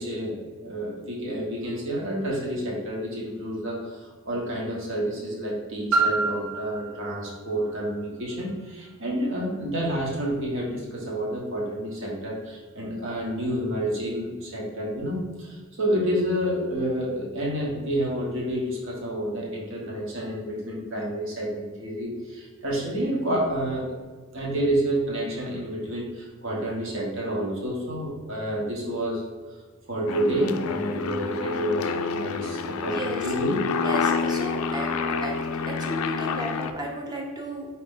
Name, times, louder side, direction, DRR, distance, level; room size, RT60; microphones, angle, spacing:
voice 1, 0.0-23.9 24.3-29.3 29.9-33.6, right 1 dB, 65° right, -3 dB, 1.2 m, -29 dB
Piano, 5.9-11.3 12.1-12.2, right 3 dB, 80° right, 0.9 m, -31 dB
Aircraft, 30.1-36.7, left 5 dB, 75° left, 0.3 m, -28 dB
voice 2, 32.8-33.2 33.8-34.9 35.2-35.3 35.6-37.7, right 1 dB, 20° right, 0 dB, 0.7 m, -34 dB
4.7 x 2.9 x 3.6 m, 1.4 s
head